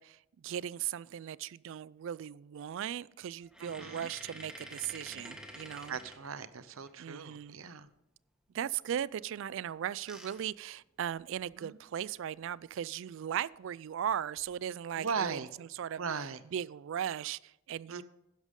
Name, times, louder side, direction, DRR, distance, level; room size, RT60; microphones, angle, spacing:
voice 1, 0.0-6.0 7.0-7.6 8.5-18.0, right 9 dB, 65° right, 0.3 m, -38 dB
sound 1, 3.4-6.9 9.6-11.5 12.1-12.2 12.4-12.6 14.1-14.4 15.0-15.5, equal, 5° right, 1.5 m, -50 dB
voice 2, 3.6-4.1 5.9-7.9 11.6-11.8 15.0-15.5 16.0-16.4 17.9-18.0, right 5 dB, 80° right, 0.7 m, -38 dB
12.5 x 10.5 x 3.7 m
head